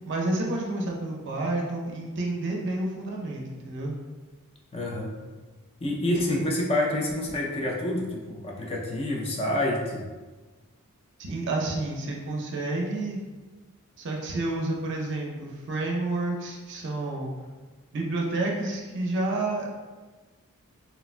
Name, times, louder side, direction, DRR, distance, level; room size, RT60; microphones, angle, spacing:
voice 1, 0.1-3.9 11.2-13.2 14.0-17.3 17.9-19.7, right 2 dB, 55° right, -1 dB, 0.5 m, -29 dB
voice 2, 4.7-5.2 5.8-10.1, left 1 dB, 25° left, -1 dB, 0.3 m, -28 dB
3.1 x 2.1 x 2.4 m, 1.3 s
head